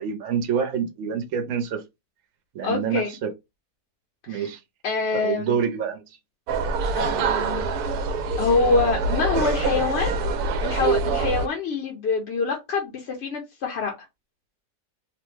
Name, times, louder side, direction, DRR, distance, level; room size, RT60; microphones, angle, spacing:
voice 1, 0.0-1.8 2.5-3.3 4.3-4.6 5.1-6.0, right 7 dB, 65° right, 1.0 m, -27 dB
voice 2, 2.6-3.1 4.3-4.5 4.8-5.6 6.9-7.7 8.4-10.2 10.6-13.9, left 4 dB, 60° left, 0.8 m, -25 dB
sound 1, 6.5-11.5, right 4 dB, 85° right, 1.1 m, -25 dB
3.0 x 2.2 x 3.1 m
omnidirectional pair, 1.6 m